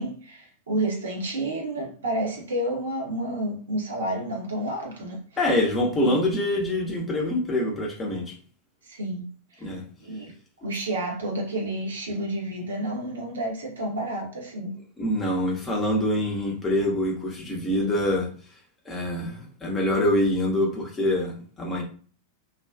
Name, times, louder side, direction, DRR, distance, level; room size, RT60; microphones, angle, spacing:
voice 1, 0.0-5.2 6.0-6.2 8.8-9.2 9.5-9.7 10.0-10.3 10.6-14.8, right 1 dB, 65° right, 0.7 m, -30 dB
voice 2, 5.4-8.3 9.6-9.8 15.0-18.3 18.9-21.8, left 1 dB, 20° left, 0.7 m, -25 dB
2.4 x 2.2 x 2.3 m
figure-of-eight pair, 90°, 0 cm